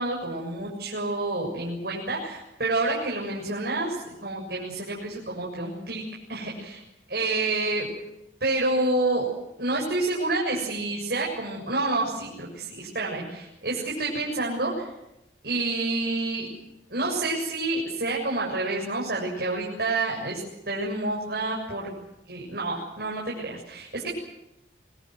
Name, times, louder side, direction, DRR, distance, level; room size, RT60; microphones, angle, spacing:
voice 1, 0.0-6.0 6.3-6.8 7.1-7.9 8.4-9.3 9.6-14.9 15.4-16.5 16.9-20.4 20.7-21.9 22.3-24.1, right 2 dB, 60° right, -2 dB, 7.3 m, -28 dB
27.5 x 21.0 x 8.0 m, 0.90 s
head